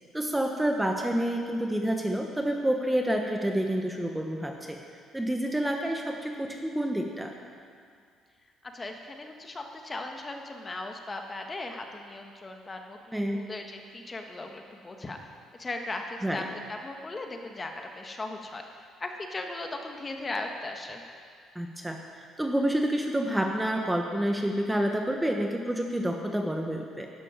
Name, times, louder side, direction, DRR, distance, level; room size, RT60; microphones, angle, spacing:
voice 1, 0.1-4.8 5.1-7.3 13.1-13.4 16.2-16.5 21.5-27.1, right 1 dB, 10° right, 3 dB, 1.0 m, -28 dB
voice 2, 8.6-15.2 15.6-18.6 19.0-21.0, left 2 dB, 25° left, 3 dB, 1.4 m, -38 dB
12.0 x 12.0 x 5.1 m, 2.2 s
cardioid pair, 95°, 0 cm